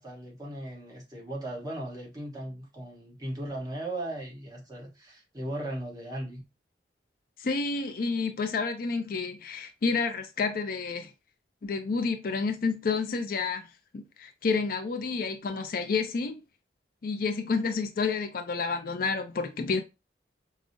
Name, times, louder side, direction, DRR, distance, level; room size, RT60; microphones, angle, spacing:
voice 1, 0.0-6.4, right 1 dB, 20° right, 1.0 m, -37 dB
voice 2, 7.4-11.1 11.6-13.6 13.9-16.4 17.0-19.8, left 4 dB, 55° left, 0.4 m, -29 dB
4.7 x 2.0 x 2.5 m
head